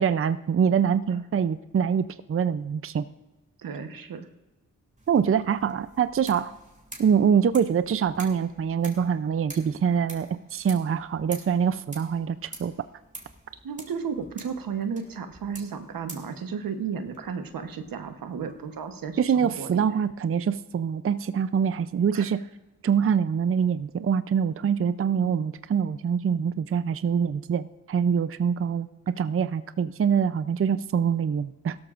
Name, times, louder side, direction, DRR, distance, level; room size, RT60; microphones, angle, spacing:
voice 1, 0.0-3.0 5.1-6.5 7.0-12.7 19.2-22.4 22.8-28.9 29.2-31.8, right 7 dB, 40° right, 13 dB, 0.5 m, -24 dB
voice 2, 3.6-4.3 13.6-19.7 22.1-22.2 25.1-25.5, right 6 dB, 85° right, 7 dB, 1.1 m, -34 dB
sound 1, 5.0-19.6, right 1 dB, 20° right, 3.1 m, -48 dB
16.5 x 13.0 x 2.5 m, 1.1 s
cardioid pair, 55°, 33 cm